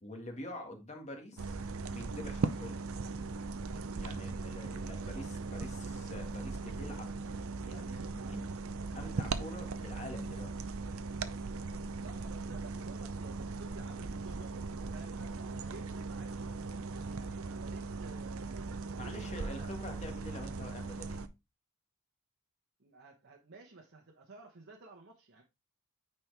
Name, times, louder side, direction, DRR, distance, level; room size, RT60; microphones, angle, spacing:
voice 1, 0.0-1.6 1.9-2.8 4.0-7.1 7.6-8.5 8.9-10.5 19.0-21.3, left 1 dB, 30° left, 1.8 m, -46 dB
sound 1, 1.4-21.3, right 4 dB, 65° right, 0.6 m, -39 dB
voice 2, 12.0-14.5 14.9-16.6 16.9-19.8 22.8-25.4, right 3 dB, 50° right, 1.1 m, -54 dB
9.1 x 4.4 x 3.3 m
head